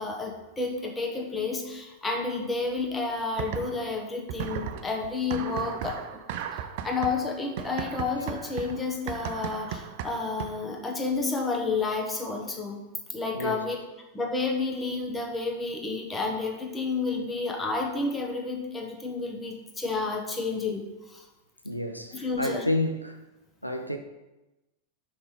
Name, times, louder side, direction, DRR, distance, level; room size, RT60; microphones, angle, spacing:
voice 1, 0.0-6.0 6.8-12.8 13.1-13.8 14.1-20.8 21.1-21.2 22.1-22.6, left 3 dB, 15° left, 1.2 m, -30 dB
sound 1, 3.4-4.0 4.3-10.7, right 8 dB, 50° right, 0.5 m, -36 dB
voice 2, 21.6-23.2 23.6-24.0, left 1 dB, 90° left, 0.5 m, -29 dB
5.8 x 5.4 x 4.9 m
figure-of-eight pair, 90°, 0 cm